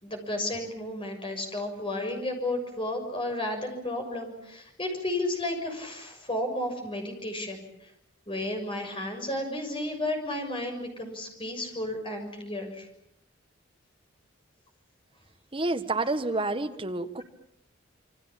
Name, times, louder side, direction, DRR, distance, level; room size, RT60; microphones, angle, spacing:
voice 1, 0.0-7.9 8.3-12.9, left 1 dB, 25° left, 4 dB, 6.6 m, -33 dB
voice 2, 15.5-17.2, right 2 dB, 25° right, 7 dB, 1.5 m, -29 dB
27.5 x 24.5 x 7.4 m, 0.79 s
head